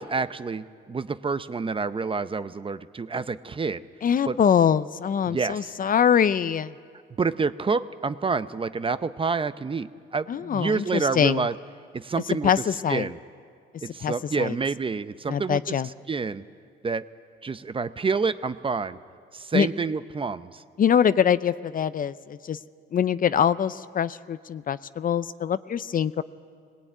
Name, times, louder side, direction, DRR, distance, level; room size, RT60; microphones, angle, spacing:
voice 1, 0.0-3.8 4.3-4.4 5.3-5.7 7.2-11.5 11.9-12.5 12.9-13.2 13.8-15.8 16.1-16.4 16.8-17.0 17.4-19.0 19.3-20.6, right 4 dB, 25° right, 13 dB, 0.6 m, -28 dB
voice 2, 4.0-6.7 10.3-11.4 12.4-13.1 14.0-14.6 15.3-15.9 19.5-19.7 20.8-22.6 22.9-26.2, left 8 dB, 45° left, 15 dB, 0.5 m, -23 dB
19.5 x 18.5 x 9.2 m, 2.1 s
cardioid pair, 90°, 20 cm